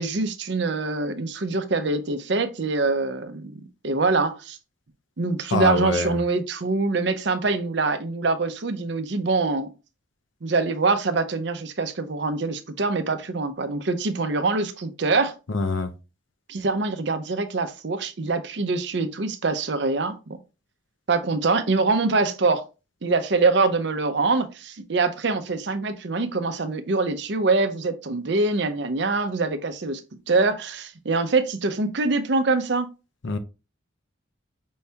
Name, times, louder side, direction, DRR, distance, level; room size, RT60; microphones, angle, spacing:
voice 1, 0.0-4.6 5.2-9.7 10.4-15.3 16.5-20.2 21.1-22.6 23.0-30.0 30.3-32.9, right 3 dB, 60° right, 0.6 m, -24 dB
voice 2, 5.5-6.2 15.5-15.9 33.2-33.4, left 2 dB, 70° left, 0.6 m, -24 dB
5.4 x 3.4 x 2.7 m
head